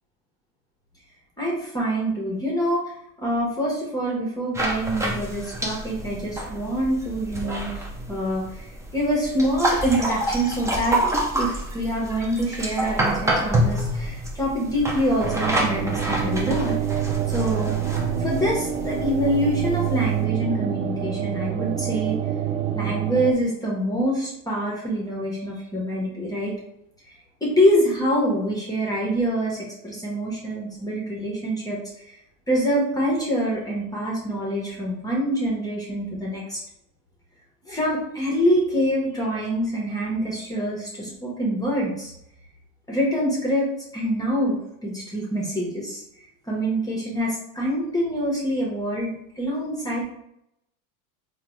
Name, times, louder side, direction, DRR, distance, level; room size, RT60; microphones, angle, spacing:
voice 1, 1.4-2.8 3.2-8.7 8.9-11.0 11.4-16.8 17.3-17.8 18.2-22.2 22.7-26.5 27.4-31.8 32.5-36.6 37.7-42.1 42.9-46.0 46.5-50.0, equal, 10° left, -4 dB, 1.0 m, -25 dB
sound 1, 4.5-20.2, right 1 dB, 5° right, 0.4 m, -28 dB
sound 2, 15.2-23.3, right 10 dB, 70° right, 0.6 m, -27 dB
3.7 x 2.3 x 3.0 m, 0.78 s
supercardioid pair, 120°, 43 cm